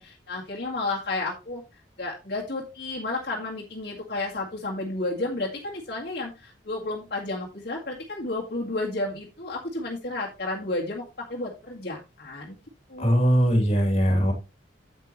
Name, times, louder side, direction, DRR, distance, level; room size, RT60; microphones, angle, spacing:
voice 1, 0.0-1.6 2.0-11.0 11.3-12.6 12.9-13.3, left 2 dB, 55° left, -3 dB, 2.0 m, -32 dB
voice 2, 13.0-14.3, equal, 30° left, 3 dB, 3.0 m, -20 dB
9.2 x 8.1 x 3.1 m, 0.27 s
head